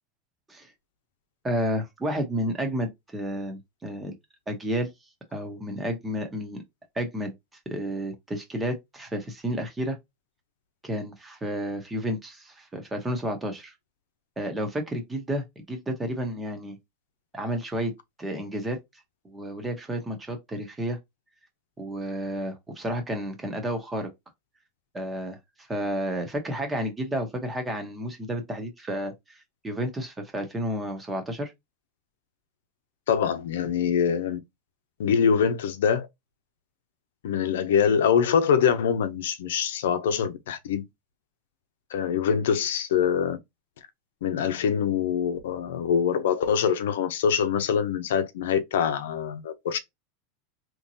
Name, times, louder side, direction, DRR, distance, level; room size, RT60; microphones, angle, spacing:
voice 1, 1.4-4.2 4.5-4.9 5.3-6.6 6.9-7.3 7.6-10.0 10.8-13.7 14.4-16.8 17.3-17.9 18.2-18.8 19.2-21.0 21.8-24.1 24.9-31.5, equal, 10° right, 1.1 m, -31 dB
voice 2, 33.1-34.4 35.0-36.1 37.2-40.8 41.9-43.4 44.2-49.8, left 7 dB, 90° left, 0.7 m, -24 dB
3.7 x 3.0 x 2.7 m
supercardioid pair, 150°, 0 cm